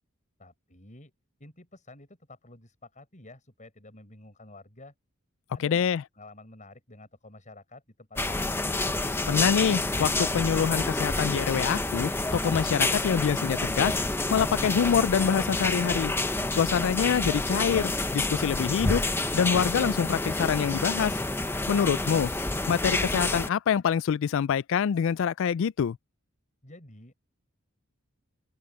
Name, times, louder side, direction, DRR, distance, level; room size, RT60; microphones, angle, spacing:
voice 1, 0.4-1.1 1.4-4.9 5.5-8.6 26.6-27.1, left 2 dB, 40° left, 6.9 m, -50 dB
voice 2, 5.6-6.0 9.3-14.0 14.3-16.1 16.5-19.0 19.3-21.1 21.7-22.3 22.7-26.0, left 7 dB, 65° left, 0.3 m, -25 dB
sound 1, 8.2-23.5, left 2 dB, 10° left, 0.8 m, -28 dB
open air
head